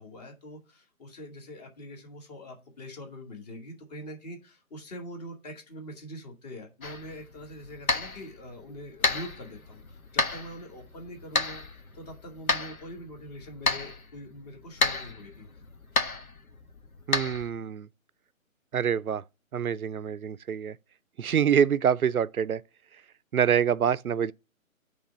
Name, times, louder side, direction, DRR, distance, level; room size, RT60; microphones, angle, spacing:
voice 1, 0.0-15.7, equal, 30° left, 1.9 m, -44 dB
sound 1, 6.8-17.5, left 3 dB, 75° left, 1.4 m, -32 dB
voice 2, 17.1-17.9 18.7-19.2 19.5-20.8 21.2-22.6 23.3-24.3, right 8 dB, 85° right, 0.6 m, -25 dB
8.7 x 3.5 x 6.6 m
figure-of-eight pair, 140°, 42 cm